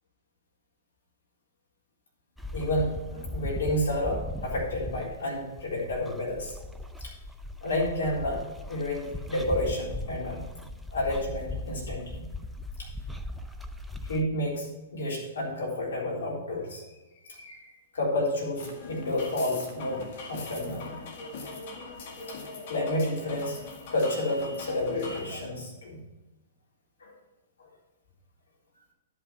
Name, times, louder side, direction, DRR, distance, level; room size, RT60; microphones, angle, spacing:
sound 1, 2.4-14.2, left 1 dB, ahead, 0.6 m, -38 dB
voice 1, 2.5-6.6 7.0-7.1 7.6-10.4 10.9-12.3 14.1-16.8 17.2-20.9 22.3-22.4 22.7-23.6 23.9-26.0 27.0-27.1 27.6-27.7, left 1 dB, 75° left, -3 dB, 3.8 m, -30 dB
sound 2, 18.6-25.4, left 3 dB, 55° left, 1.8 m, -41 dB
11.0 x 5.7 x 5.9 m, 1.1 s
hypercardioid pair, 115°, 0 cm